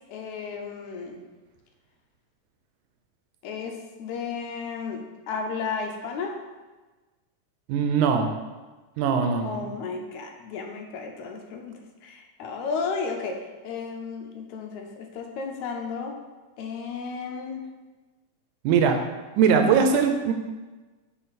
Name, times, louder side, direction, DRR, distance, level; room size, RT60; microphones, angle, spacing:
voice 1, 0.1-1.2 3.4-6.4 9.4-16.2 16.6-17.6, left 5 dB, 75° left, 3 dB, 2.0 m, -33 dB
voice 2, 7.7-8.3 9.0-9.7 18.6-19.0 19.4-20.3, right 6 dB, 85° right, 5 dB, 2.1 m, -21 dB
7.8 x 3.9 x 4.1 m, 1.2 s
omnidirectional pair, 3.5 m